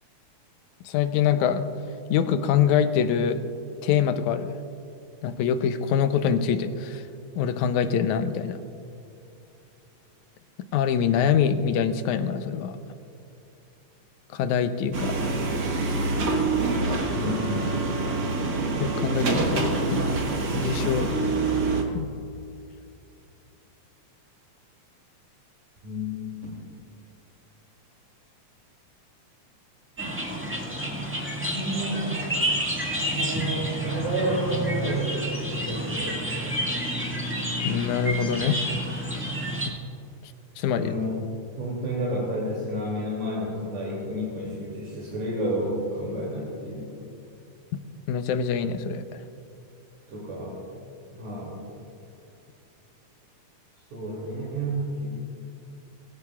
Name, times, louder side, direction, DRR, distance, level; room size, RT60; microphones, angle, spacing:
voice 1, 0.9-1.7 2.1-3.4 3.8-4.6 5.2-7.0 7.4-8.6 10.7-12.8 14.3-15.3 18.8-20.0 20.5-21.1 21.9-22.1 37.6-38.6 39.7-39.8 40.2-40.9 48.1-49.2, left 7 dB, 90° left, 9 dB, 2.1 m, -24 dB
sound 1, 14.9-21.8, right 3 dB, 45° right, 1.5 m, -26 dB
voice 2, 17.1-17.8 25.8-26.2 31.4-32.2 33.1-36.3 40.8-41.1 41.6-46.9 50.1-50.6 51.1-51.6 53.9-55.1, equal, 75° right, -4 dB, 4.0 m, -30 dB
sound 2, 30.0-39.7, right 1 dB, 10° right, 0.7 m, -29 dB
22.5 x 15.5 x 2.4 m, 2.6 s
omnidirectional pair, 3.4 m